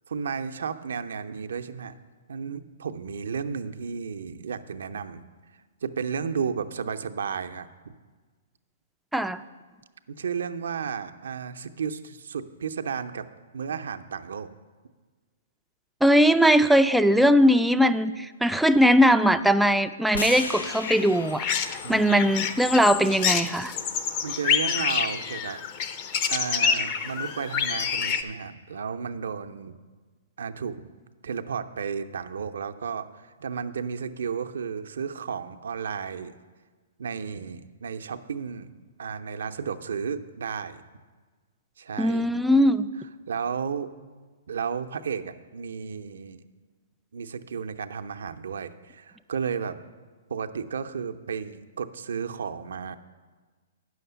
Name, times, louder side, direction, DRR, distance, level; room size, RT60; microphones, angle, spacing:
voice 1, 0.1-1.9 2.3-5.2 5.8-7.9 10.1-13.3 13.5-14.5 21.8-22.2 24.2-25.6 26.3-29.8 30.4-30.8 31.2-36.3 37.0-38.7 39.0-40.8 41.8-42.3 43.3-43.9 44.5-46.4 47.1-49.8 50.3-53.0, right 6 dB, 80° right, 9 dB, 0.6 m, -33 dB
voice 2, 9.1-9.4 16.0-23.7 42.0-42.9, equal, ahead, 9 dB, 0.3 m, -20 dB
sound 1, 20.1-24.3, left 3 dB, 85° left, 0.9 m, -38 dB
sound 2, 20.7-28.2, left 7 dB, 40° left, 0.6 m, -28 dB
9.3 x 6.4 x 6.8 m, 1.4 s
hypercardioid pair, 140°, 0 cm